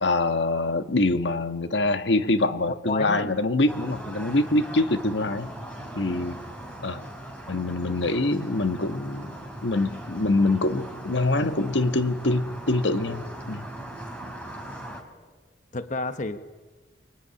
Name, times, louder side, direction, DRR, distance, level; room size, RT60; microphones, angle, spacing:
voice 1, 0.0-5.5 5.9-6.4 6.8-7.0 7.5-13.6, left 2 dB, 75° left, 9 dB, 1.4 m, -25 dB
voice 2, 2.7-3.3 15.7-16.4, left 3 dB, 45° left, 10 dB, 1.1 m, -31 dB
sound 1, 3.7-15.0, right 1 dB, 5° left, 4.7 m, -39 dB
24.0 x 24.0 x 9.9 m, 1.3 s
head